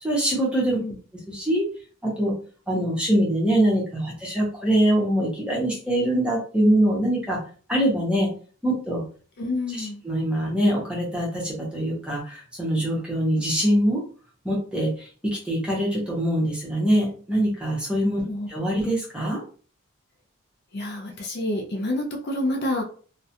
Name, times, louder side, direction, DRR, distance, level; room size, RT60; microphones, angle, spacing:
voice 1, 0.0-0.8 1.3-1.6 2.0-2.3 2.7-7.4 7.7-8.3 8.6-9.0 9.8-14.0 14.4-18.2 18.5-19.4, right 1 dB, 5° right, -4 dB, 0.7 m, -23 dB
voice 2, 9.4-10.0 18.2-18.5 20.7-22.8, left 1 dB, 50° left, 2 dB, 0.4 m, -28 dB
2.3 x 2.0 x 2.7 m, 0.41 s
head